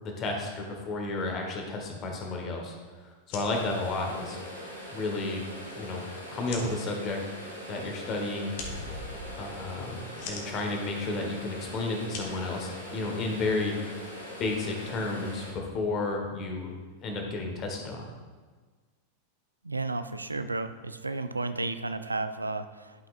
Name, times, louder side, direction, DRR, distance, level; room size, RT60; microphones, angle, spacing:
voice 1, 0.0-2.7 3.0-4.4 4.9-5.4 5.8-7.2 7.7-8.5 9.4-13.8 14.4-16.7 17.0-18.0, left 2 dB, 30° left, 1 dB, 1.4 m, -32 dB
sound 1, 3.1-13.3, left 4 dB, 50° left, 1.2 m, -47 dB
sound 2, 3.5-15.5, equal, 85° left, 1.5 m, -42 dB
sound 3, 8.6-11.8 12.0-12.1, left 1 dB, 55° right, 1.7 m, -45 dB
voice 2, 19.6-23.1, right 3 dB, 80° right, 10 dB, 0.4 m, -33 dB
11.5 x 5.7 x 2.5 m, 1.4 s
figure-of-eight pair, 90°, 0 cm